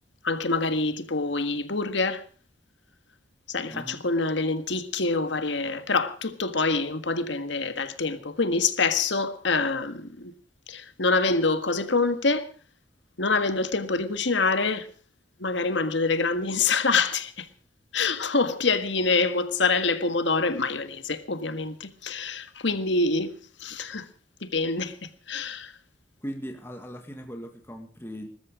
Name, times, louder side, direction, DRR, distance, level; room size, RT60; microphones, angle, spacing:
voice 1, 0.2-2.2 3.5-10.3 10.7-12.5 13.2-14.9 15.4-17.5 17.9-24.1 24.4-25.7, left 3 dB, 70° left, 1.7 m, -26 dB
voice 2, 3.7-4.1 26.2-28.3, equal, 10° left, 1.8 m, -38 dB
20.5 x 13.5 x 5.0 m
head